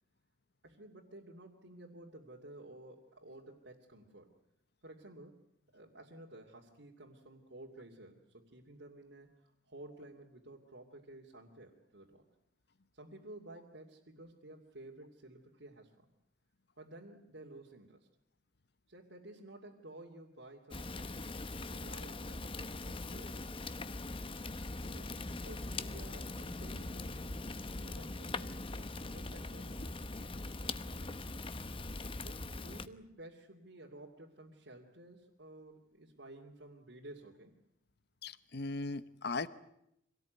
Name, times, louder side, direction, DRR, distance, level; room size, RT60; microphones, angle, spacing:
voice 1, 0.6-4.3 4.8-5.5 5.7-12.3 12.9-16.1 16.8-18.1 18.9-23.6 24.8-31.3 32.2-37.6, right 1 dB, 70° right, -2 dB, 2.7 m, -54 dB
Fire, 20.7-32.9, left 2 dB, 30° left, 1.0 m, -41 dB
voice 2, 38.2-39.5, left 3 dB, 55° left, 15 dB, 1.0 m, -38 dB
25.5 x 18.0 x 9.3 m, 0.78 s
head